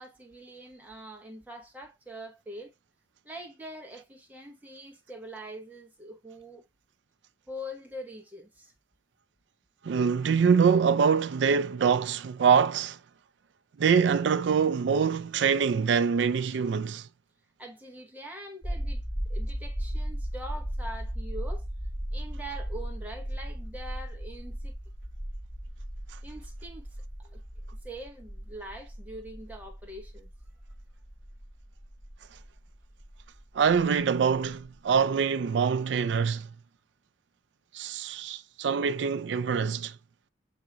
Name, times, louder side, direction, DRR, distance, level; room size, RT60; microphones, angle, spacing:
voice 1, 0.0-2.7 3.2-6.7 7.5-8.7 17.6-19.0 19.3-21.7 22.1-24.7 26.2-26.9 27.2-27.4 27.7-30.3, equal, 10° right, 1.1 m, -43 dB
voice 2, 9.8-13.0 13.8-17.1 33.5-36.5 37.7-39.9, right 6 dB, 70° right, 0.4 m, -24 dB
sound 1, 18.6-34.7 34.9-35.0, equal, 25° left, 1.7 m, -36 dB
7.2 x 2.8 x 2.3 m
head